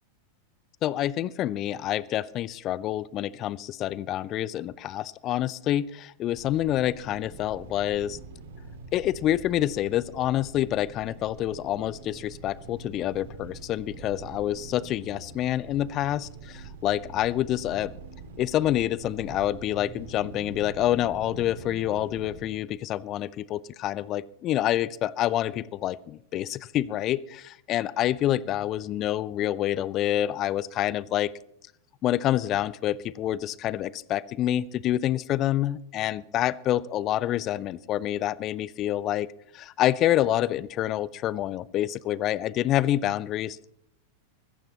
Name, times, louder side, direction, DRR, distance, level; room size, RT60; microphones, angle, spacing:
voice 1, 0.8-8.2 8.9-17.9 18.4-31.3 32.0-39.3 39.5-43.7, left 13 dB, 35° left, 23 dB, 0.5 m, -27 dB
sound 1, 6.3-22.4, right 3 dB, 60° right, 2.6 m, -44 dB
24.0 x 14.5 x 3.0 m, 0.73 s
figure-of-eight pair, 90°, 0 cm